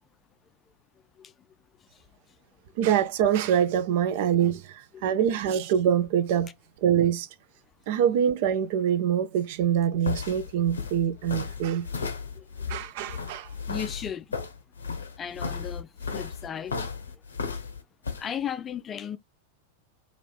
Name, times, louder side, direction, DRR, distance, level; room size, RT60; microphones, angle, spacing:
voice 1, 2.8-6.5 6.8-7.3 7.9-11.9 12.7-13.5, right 9 dB, 50° right, 0.4 m, -24 dB
sound 1, 9.6-18.2, left 5 dB, 70° left, 0.6 m, -35 dB
voice 2, 12.3-12.7 13.7-14.4 15.2-16.8 17.1-17.2 18.2-19.2, left 8 dB, 25° left, 0.4 m, -36 dB
2.8 x 2.5 x 3.3 m
figure-of-eight pair, 90°, 0 cm